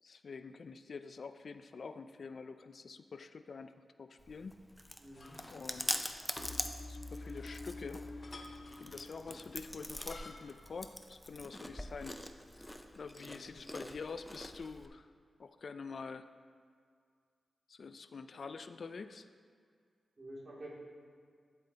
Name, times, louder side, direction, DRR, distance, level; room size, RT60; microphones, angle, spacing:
voice 1, 0.0-3.7 4.0-4.6 5.5-6.2 6.9-8.0 8.4-12.2 13.0-15.1 15.4-16.3 17.7-19.3, left 4 dB, 65° left, 10 dB, 0.3 m, -46 dB
Chewing mastication, 4.2-14.9, left 1 dB, 10° left, 0.5 m, -44 dB
voice 2, 5.0-5.4 13.2-13.6 20.2-20.7, right 1 dB, 45° right, -5 dB, 2.3 m, -49 dB
sound 1, 5.1-10.9, left 3 dB, 45° left, 0.7 m, -56 dB
sound 2, 6.4-9.8 10.1-10.4, left 2 dB, 85° left, 0.9 m, -48 dB
12.0 x 7.6 x 2.8 m, 2.1 s
cardioid pair, 70°, 0 cm